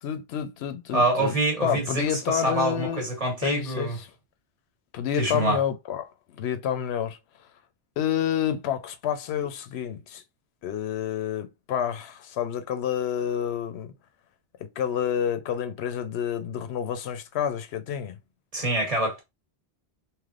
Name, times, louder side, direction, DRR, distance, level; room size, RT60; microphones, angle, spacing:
voice 1, 0.0-3.0 3.4-4.1 4.9-7.2 8.0-10.2 10.6-13.9 14.8-18.2, left 9 dB, 85° left, 0.8 m, -29 dB
voice 2, 0.9-4.0 5.2-5.6 18.5-19.2, right 2 dB, 35° right, 1.2 m, -25 dB
3.3 x 2.9 x 2.4 m
omnidirectional pair, 1.1 m